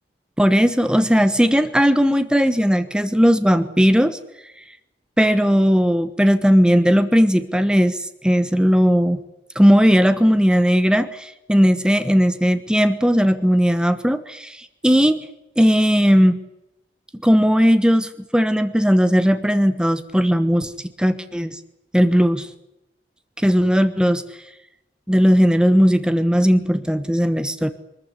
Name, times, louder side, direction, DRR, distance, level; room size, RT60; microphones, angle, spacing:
voice 1, 0.4-4.2 5.2-9.2 9.5-15.2 15.6-16.4 17.2-20.7 21.0-21.6 21.9-22.5 23.4-24.2 25.1-27.7, equal, 5° right, 10 dB, 1.1 m, -17 dB
24.0 x 14.5 x 9.9 m, 0.89 s
head